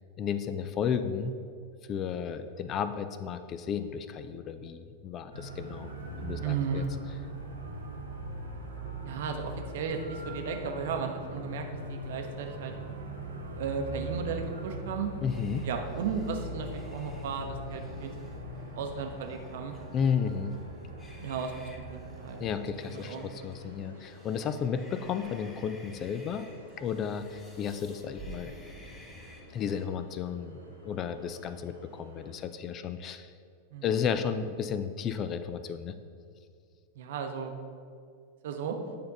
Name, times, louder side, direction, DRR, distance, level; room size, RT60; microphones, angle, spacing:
voice 1, 0.2-1.4 1.9-5.9 6.2-6.8 15.2-15.7 19.9-20.5 22.4-26.5 26.8-28.6 29.5-33.3 33.8-35.9, left 7 dB, 30° left, 10 dB, 0.4 m, -33 dB
sound 1, 5.3-22.6, right 1 dB, 75° right, 1.1 m, -41 dB
voice 2, 6.4-6.9 9.0-12.7 13.6-15.1 15.6-18.1 18.8-19.7 21.2-22.6 22.9-23.3 23.6-23.7 33.7-33.9 36.9-37.5 38.4-38.8, right 5 dB, 55° right, 4 dB, 0.8 m, -35 dB
sound 2, 15.3-29.9, equal, 15° left, 0.9 m, -53 dB
sound 3, 22.7-32.4, left 1 dB, 85° left, 1.4 m, -54 dB
8.7 x 3.5 x 5.3 m, 2.2 s
figure-of-eight pair, 90°, 0 cm